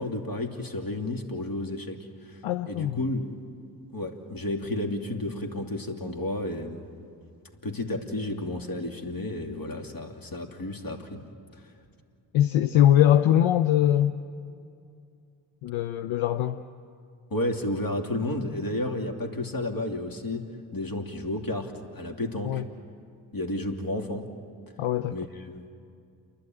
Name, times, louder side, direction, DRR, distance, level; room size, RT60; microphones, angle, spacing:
voice 1, 0.0-2.4 2.7-3.3 3.9-6.8 7.6-11.2 17.3-22.6 23.3-24.3 25.1-25.6, left 1 dB, 45° left, 3 dB, 2.8 m, -32 dB
voice 2, 2.4-3.0 12.3-14.2 15.6-16.6 22.4-22.6 24.8-25.2, left 11 dB, 75° left, 10 dB, 0.8 m, -22 dB
29.0 x 11.5 x 9.2 m, 2.4 s
hypercardioid pair, 45°, 49 cm